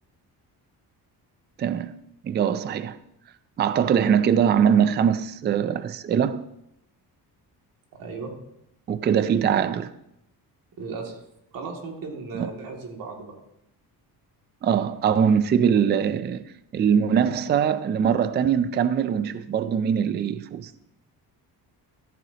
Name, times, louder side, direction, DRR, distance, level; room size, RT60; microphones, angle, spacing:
voice 1, 1.6-1.9 2.2-3.0 3.6-6.4 8.9-9.9 12.3-12.5 14.6-16.4 16.7-20.7, right 8 dB, 30° right, 0.4 m, -22 dB
voice 2, 7.9-8.3 10.8-11.2 11.5-13.4, right 4 dB, 60° right, 2.4 m, -36 dB
14.0 x 13.5 x 2.9 m
cardioid pair, 170°, 38 cm